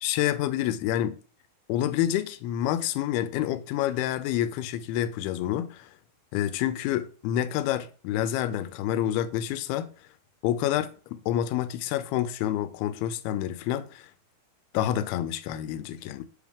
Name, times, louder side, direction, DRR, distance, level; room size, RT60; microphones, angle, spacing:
voice 1, 0.0-1.2 1.7-5.9 6.3-9.9 10.4-14.1 14.7-16.2, left 12 dB, 85° left, 2.5 m, -28 dB
8.0 x 3.5 x 3.6 m
omnidirectional pair, 4.4 m